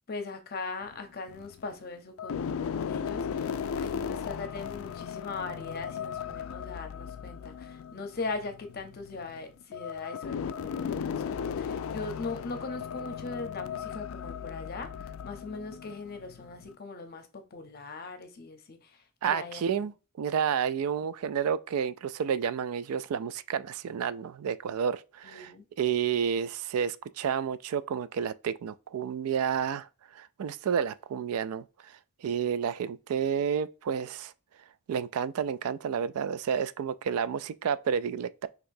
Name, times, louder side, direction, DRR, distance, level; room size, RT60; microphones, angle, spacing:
voice 1, 0.1-19.9 25.2-25.6, left 3 dB, 45° left, 0.7 m, -40 dB
sound 1, 0.8-1.7 2.2-16.7, left 7 dB, 65° left, 0.3 m, -36 dB
voice 2, 19.2-25.5 25.8-29.9 30.1-31.6 32.2-34.3 34.9-38.5, right 7 dB, 80° right, 0.3 m, -30 dB
5.8 x 3.0 x 2.6 m
head